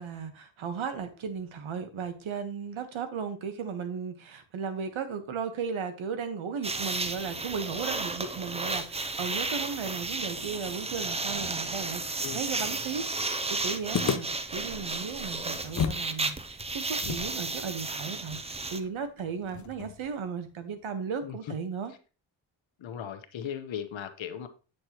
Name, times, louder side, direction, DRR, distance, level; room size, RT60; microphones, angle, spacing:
voice 1, 0.0-21.9, right 6 dB, 75° right, 1.3 m, -36 dB
sound 1, 6.6-18.8, right 3 dB, 15° right, 0.4 m, -33 dB
Drawer open or close, 11.1-13.6 14.1-14.2 14.4-16.1, right 3 dB, 35° right, 1.6 m, -53 dB
sound 2, 13.9-16.1 16.4-16.5 17.0-20.1, left 7 dB, 40° left, 0.5 m, -35 dB
voice 2, 22.8-24.5, left 9 dB, 70° left, 1.1 m, -37 dB
7.9 x 6.5 x 2.9 m
wide cardioid pair, 120°, 48 cm